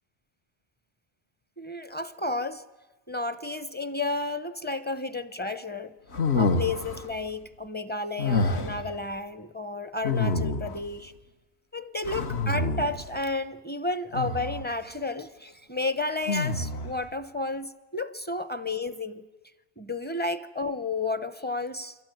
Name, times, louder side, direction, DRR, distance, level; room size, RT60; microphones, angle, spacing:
voice 1, 1.6-2.6 3.1-5.9 6.3-11.1 11.7-19.2 19.8-22.0, left 2 dB, 10° left, 0.7 m, -32 dB
sound 1, 6.1-7.1 8.2-8.9 10.0-10.9 12.0-13.1 14.1-14.7 16.3-17.0, left 3 dB, 70° left, 1.6 m, -27 dB
28.5 x 22.0 x 9.3 m
omnidirectional pair, 1.1 m